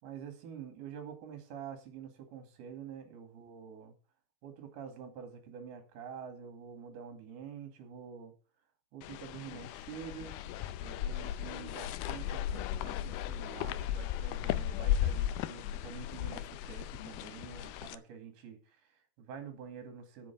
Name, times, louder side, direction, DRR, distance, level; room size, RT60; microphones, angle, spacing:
voice 1, 0.0-3.9 4.4-8.3 8.9-10.4 10.8-20.3, right 7 dB, 65° right, 6 dB, 4.0 m, -47 dB
sound 1, 9.0-17.9, left 11 dB, 80° left, 2.3 m, -36 dB
7.7 x 7.0 x 8.3 m, 0.36 s
omnidirectional pair, 4.9 m